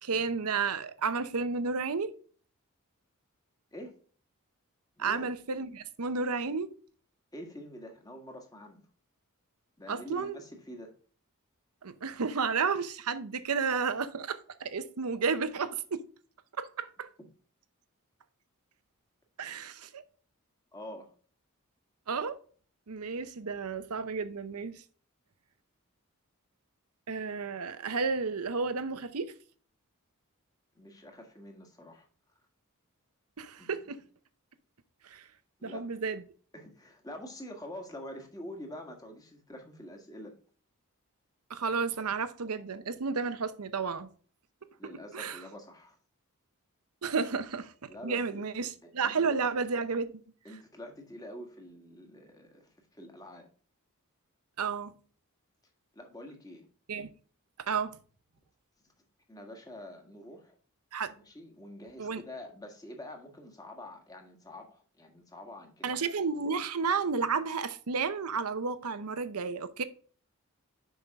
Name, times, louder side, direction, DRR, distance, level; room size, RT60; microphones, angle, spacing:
voice 1, 0.0-2.1 5.0-6.7 9.9-10.4 11.8-16.0 16.6-17.1 19.4-20.0 22.1-22.4 22.9-24.8 27.1-29.3 33.4-34.0 35.0-35.2 35.6-36.2 41.5-44.1 45.1-45.4 47.0-50.1 54.6-54.9 56.9-57.1 57.7-58.0 60.9-61.1 62.0-62.2 65.8-69.8, right 5 dB, 80° right, 0.8 m, -32 dB
voice 2, 5.0-5.3 7.3-8.8 9.8-10.9 20.7-21.1 30.7-32.1 33.6-34.0 35.6-35.8 36.5-40.3 44.8-46.0 47.8-49.3 50.4-53.5 55.9-56.7 59.3-60.6 61.1-66.0, left 1 dB, 15° left, 1.5 m, -46 dB
7.0 x 5.6 x 3.5 m
head